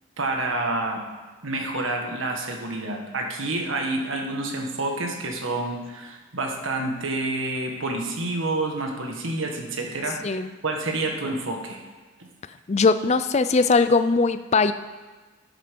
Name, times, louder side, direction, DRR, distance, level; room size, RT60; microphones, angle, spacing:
voice 1, 0.2-1.0 1.4-11.8 12.2-12.3, right 2 dB, 70° right, 2 dB, 1.6 m, -28 dB
voice 2, 12.7-14.7, left 4 dB, 35° left, 11 dB, 0.4 m, -20 dB
13.0 x 8.0 x 5.3 m, 1.3 s
head